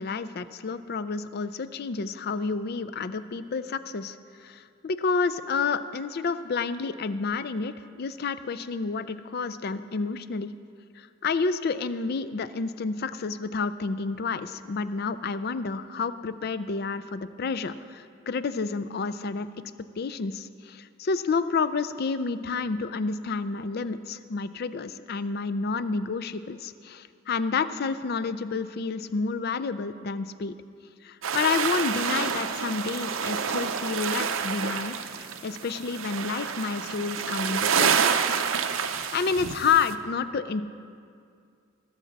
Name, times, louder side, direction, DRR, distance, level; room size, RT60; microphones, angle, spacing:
voice 1, 0.0-4.2 4.4-10.5 11.0-19.5 20.0-30.5 31.0-37.9 39.1-40.6, left 4 dB, 50° left, 12 dB, 0.4 m, -29 dB
sound 1, 31.2-39.9, right 7 dB, 75° right, 0.6 m, -28 dB
19.5 x 7.3 x 4.1 m, 2.3 s
head